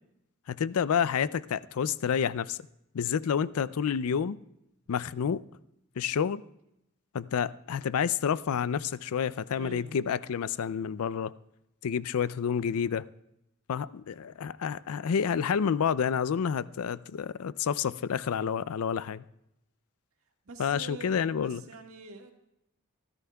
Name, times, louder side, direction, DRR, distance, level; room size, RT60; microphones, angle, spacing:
voice 1, 0.5-2.6 2.9-4.4 4.9-5.4 6.0-6.4 7.1-11.3 11.8-13.0 13.7-19.2 20.6-21.6, left 7 dB, 80° left, 0.4 m, -29 dB
voice 2, 9.5-9.9 20.5-22.3, right 2 dB, 70° right, 1.8 m, -45 dB
25.0 x 13.0 x 2.3 m
head